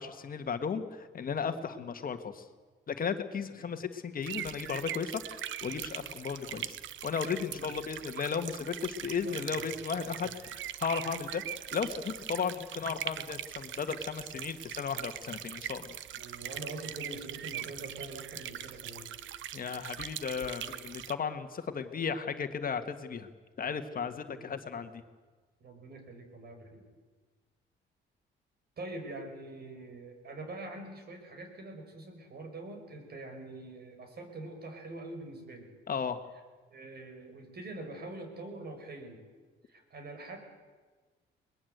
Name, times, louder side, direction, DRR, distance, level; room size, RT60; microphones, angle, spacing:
voice 1, 0.0-2.5 2.9-11.4 11.7-15.9 19.5-23.3 23.6-24.9 35.9-36.2, left 6 dB, 45° left, 8 dB, 1.6 m, -35 dB
sound 1, 4.2-21.1, right 11 dB, 70° right, 0.9 m, -41 dB
voice 2, 9.1-10.3 16.1-19.1 24.3-24.8 25.6-26.8 28.8-35.7 36.7-39.2 39.7-40.4, right 2 dB, 55° right, 5 dB, 5.7 m, -45 dB
22.5 x 20.5 x 8.0 m, 1.4 s
cardioid pair, 90°, 20 cm